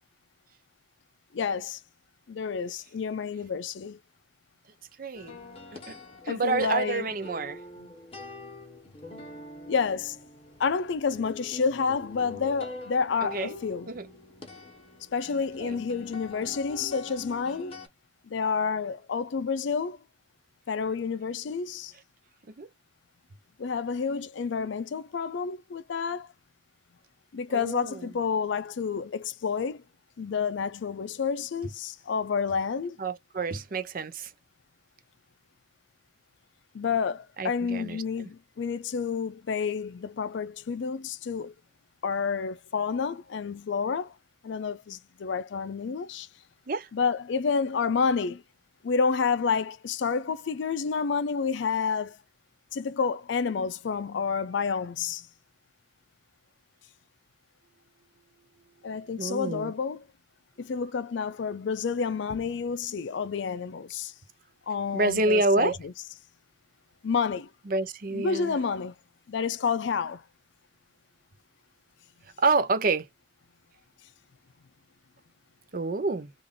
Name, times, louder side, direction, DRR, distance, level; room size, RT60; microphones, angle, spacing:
voice 1, 1.3-1.8 2.3-4.0 6.3-7.1 7.8-7.9 9.7-10.2 10.6-13.9 15.1-17.8 18.2-20.0 20.7-21.9 23.6-26.3 27.3-29.8 30.2-33.0 36.7-41.5 42.0-44.1 44.4-46.3 46.9-48.4 48.8-52.2 52.7-55.3 58.8-60.0 60.6-64.1 64.7-65.9 67.0-67.5 68.1-68.9 69.3-70.2, left 5 dB, 70° left, 0.4 m, -29 dB
voice 2, 5.0-5.4 5.9-6.0 6.2-7.6 13.2-13.6 13.9-14.1 15.6-15.8 22.6-22.7 27.5-28.0 33.0-34.3 37.4-38.0 46.7-46.9 59.2-59.7 64.9-65.8 67.7-68.5 72.4-73.1 75.7-76.3, right 3 dB, 45° right, 0.5 m, -28 dB
sound 1, 5.1-17.9, left 3 dB, 30° left, 1.1 m, -44 dB
3.5 x 2.5 x 3.6 m
head